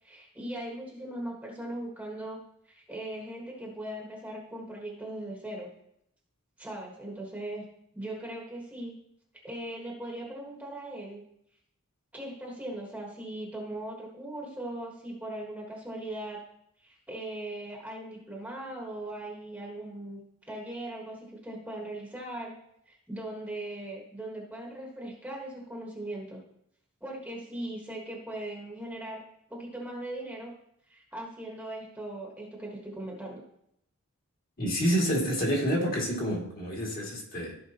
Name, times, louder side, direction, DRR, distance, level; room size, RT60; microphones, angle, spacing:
voice 1, 0.0-2.4 2.7-5.7 6.6-7.6 7.9-8.9 9.4-11.2 12.1-16.4 16.8-20.2 20.5-22.5 22.9-26.4 27.0-29.2 29.5-30.5 30.9-33.4, right 1 dB, 5° right, -2 dB, 1.4 m, -39 dB
voice 2, 34.6-37.5, equal, 40° left, -2 dB, 2.4 m, -28 dB
14.5 x 4.9 x 2.9 m, 0.75 s
head